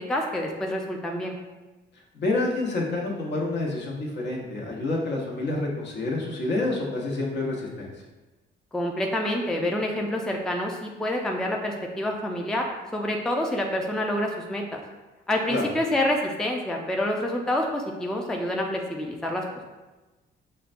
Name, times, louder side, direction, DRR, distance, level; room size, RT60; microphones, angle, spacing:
voice 1, 0.0-1.4 8.7-14.8 15.3-19.4, left 1 dB, 5° left, 1 dB, 0.4 m, -27 dB
voice 2, 2.1-7.9 15.5-15.7, left 2 dB, 60° left, -2 dB, 0.9 m, -28 dB
5.5 x 2.2 x 2.5 m, 1.1 s
cardioid pair, 90°, 20 cm